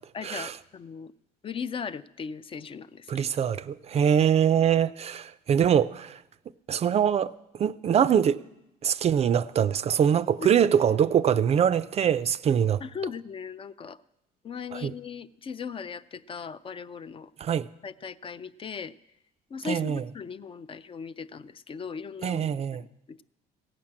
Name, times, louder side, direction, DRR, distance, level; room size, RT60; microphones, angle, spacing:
voice 1, 0.1-1.1 1.4-3.3 3.9-4.0 10.4-10.5 12.8-14.0 14.4-17.3 17.8-18.9 19.5-22.5 22.8-23.2, left 6 dB, 30° left, 0.4 m, -38 dB
voice 2, 3.1-6.2 6.7-7.3 7.6-8.4 8.8-12.8 14.7-14.9 17.4-17.7 19.6-20.0 22.2-22.8, right 8 dB, 40° right, 0.4 m, -23 dB
15.5 x 5.9 x 8.7 m
cardioid pair, 110°, 17 cm